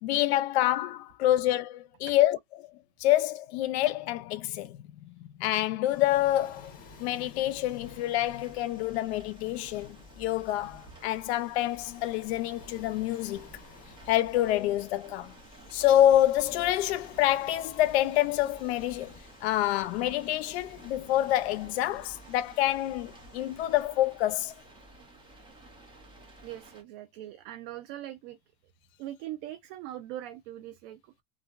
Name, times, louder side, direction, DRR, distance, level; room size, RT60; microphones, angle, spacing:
voice 1, 0.0-2.7 3.0-4.8 5.4-6.7 7.0-13.5 14.1-15.3 15.7-24.5, left 13 dB, 90° left, 0.5 m, -27 dB
Waves surf, 5.8-23.9, left 2 dB, 25° left, 1.3 m, -53 dB
sound 1, 7.8-26.8, right 2 dB, 15° right, 1.1 m, -53 dB
voice 2, 26.4-28.4 29.0-31.2, right 13 dB, 65° right, 0.5 m, -41 dB
3.0 x 2.4 x 2.4 m
supercardioid pair, 135°, 32 cm